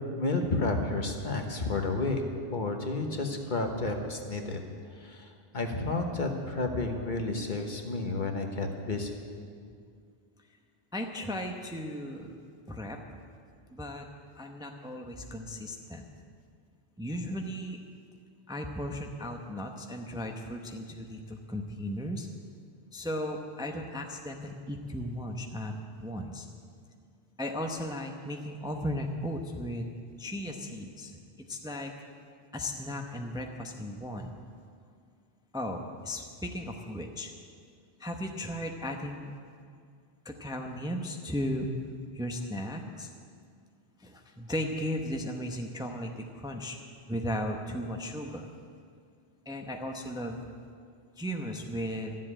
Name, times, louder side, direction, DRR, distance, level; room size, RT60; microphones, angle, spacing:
voice 1, 0.0-2.2 2.5-4.6 4.9-5.3 5.5-9.1, left 3 dB, 50° left, 3 dB, 1.4 m, -31 dB
voice 2, 10.9-12.3 12.7-13.0 13.7-14.1 14.4-16.0 17.0-17.8 18.5-22.3 22.9-25.7 26.0-26.5 27.4-29.9 30.2-31.9 32.5-34.4 35.5-37.3 38.0-39.3 40.2-41.7 42.1-43.1 44.0-46.8 47.1-48.5 49.5-50.4 51.2-52.1, equal, 5° right, 3 dB, 0.7 m, -36 dB
13.0 x 7.6 x 9.9 m, 2.2 s
omnidirectional pair, 1.0 m